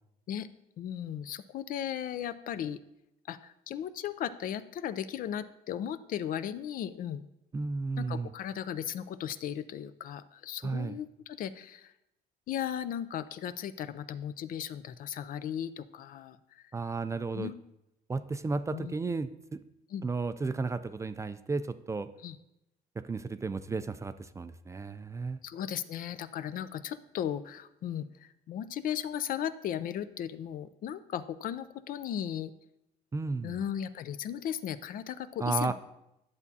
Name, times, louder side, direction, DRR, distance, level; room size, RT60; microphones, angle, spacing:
voice 1, 0.8-2.8 3.3-7.3 8.0-11.9 12.5-16.7 17.3-17.5 18.7-18.9 19.9-20.0 22.2-22.4 25.4-32.5 33.4-35.7, left 9 dB, 55° left, 13 dB, 0.4 m, -36 dB
voice 2, 7.5-8.3 10.6-11.0 16.7-17.5 18.1-19.6 20.0-22.1 23.0-25.4 33.1-33.6 35.4-35.7, right 4 dB, 15° right, 12 dB, 0.3 m, -33 dB
10.5 x 7.1 x 2.7 m, 0.85 s
cardioid pair, 110°, 17 cm